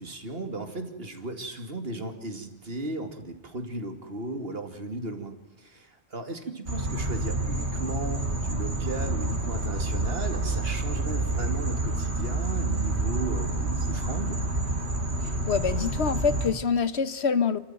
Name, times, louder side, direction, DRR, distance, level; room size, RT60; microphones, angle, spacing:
voice 1, 0.0-14.4, right 2 dB, 65° right, 6 dB, 2.8 m, -36 dB
sound 1, 6.7-16.5, right 2 dB, 90° right, 3.3 m, -28 dB
voice 2, 15.2-17.6, left 6 dB, 80° left, 14 dB, 1.4 m, -26 dB
29.0 x 13.5 x 9.1 m, 1.1 s
omnidirectional pair, 1.1 m